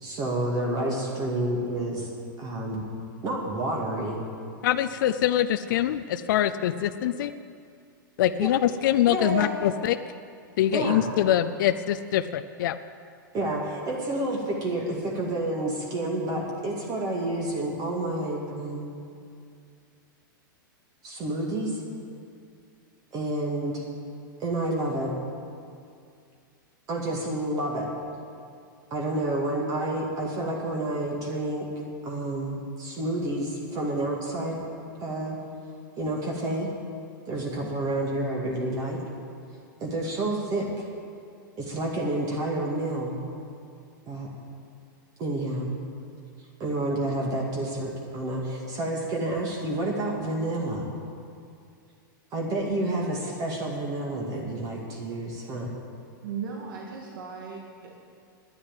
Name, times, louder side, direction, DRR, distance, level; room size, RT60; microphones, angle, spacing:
voice 1, 0.0-2.1 2.4-2.9 3.2-4.2 8.4-8.5 9.1-9.5 10.7-11.0 13.3-18.9 21.0-21.8 23.1-23.8 24.4-25.1 26.9-27.9 28.9-31.6 32.0-34.6 35.0-35.4 36.0-36.7 37.3-39.0 39.8-40.9 41.6-43.1 44.1-44.3 45.2-45.7 46.6-50.9 52.3-55.7, right 1 dB, 35° right, -1 dB, 2.3 m, -29 dB
voice 2, 4.6-7.3 8.2-10.0 10.6-12.8, left 12 dB, 65° left, 10 dB, 0.5 m, -24 dB
voice 3, 56.2-57.9, right 6 dB, 75° right, -1 dB, 2.1 m, -37 dB
10.5 x 9.6 x 9.0 m, 2.3 s
hypercardioid pair, 125°, 11 cm